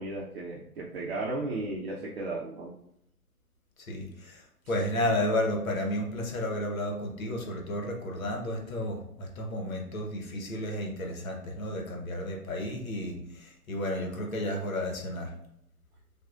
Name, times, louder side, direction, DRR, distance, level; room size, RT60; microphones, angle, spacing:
voice 1, 0.0-2.8 4.8-4.9, right 2 dB, 40° right, -3 dB, 0.7 m, -35 dB
voice 2, 3.9-15.4, left 1 dB, 60° left, 2 dB, 1.1 m, -32 dB
5.9 x 2.4 x 2.4 m, 0.76 s
figure-of-eight pair, 120°, 47 cm